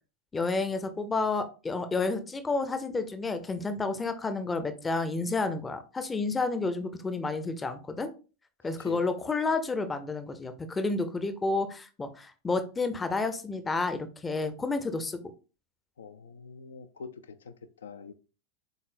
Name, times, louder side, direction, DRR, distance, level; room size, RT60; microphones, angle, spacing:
voice 1, 0.3-8.1 8.6-15.2, left 3 dB, 15° left, 0.5 m, -30 dB
voice 2, 16.0-18.1, left 5 dB, 65° left, 0.3 m, -44 dB
3.9 x 3.7 x 2.5 m
figure-of-eight pair, 90°, 0 cm